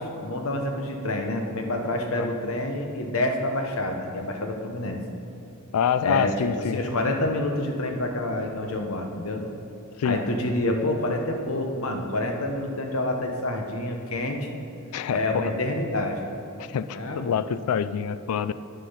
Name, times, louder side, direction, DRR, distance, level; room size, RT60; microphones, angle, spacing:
voice 1, 0.0-5.0 6.0-6.3 6.6-9.4 10.0-14.5 15.1-16.2 16.9-17.4, left 1 dB, 70° left, 3 dB, 1.0 m, -28 dB
voice 2, 5.7-6.8 10.0-10.2 14.9-15.6 16.7-18.5, left 7 dB, 90° left, 15 dB, 0.4 m, -26 dB
10.0 x 5.7 x 5.6 m, 2.8 s
head